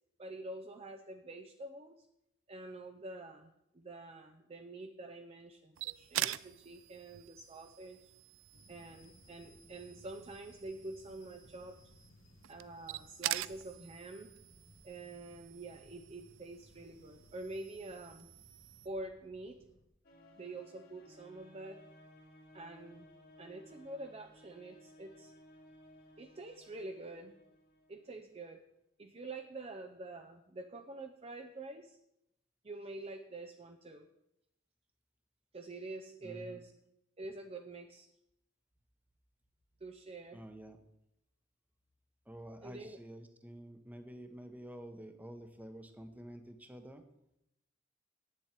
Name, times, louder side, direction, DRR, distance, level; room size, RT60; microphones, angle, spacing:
voice 1, 0.2-2.0 2.5-8.0 8.7-11.8 12.5-14.3 14.8-18.3 18.8-19.6 20.4-21.8 22.5-23.1 23.4-25.3 26.2-27.4 27.9-28.6 29.0-32.0 32.6-34.1 35.5-36.7 37.2-38.1 39.8-40.4 42.6-43.0, right 2 dB, 30° right, 5 dB, 0.6 m, -47 dB
sound 1, 5.7-18.9, right 14 dB, 75° right, 0.3 m, -45 dB
sound 2, 8.5-19.9, left 1 dB, 80° left, 1.7 m, -63 dB
sound 3, 20.0-28.4, left 1 dB, 50° left, 2.0 m, -59 dB
voice 2, 36.2-36.6 40.3-40.8 42.3-47.0, right 1 dB, 10° right, 7 dB, 1.0 m, -49 dB
9.0 x 7.4 x 8.2 m, 0.82 s
head